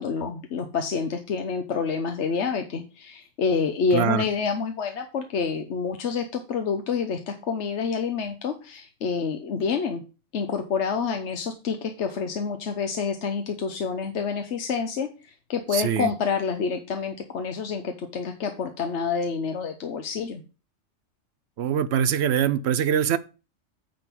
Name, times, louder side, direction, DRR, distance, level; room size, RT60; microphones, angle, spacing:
voice 1, 0.0-10.0 10.3-20.4, left 5 dB, 60° left, 1.1 m, -28 dB
voice 2, 3.9-4.3 15.7-16.1 21.6-23.2, right 9 dB, 60° right, 0.8 m, -23 dB
9.0 x 3.8 x 5.9 m
omnidirectional pair, 1.3 m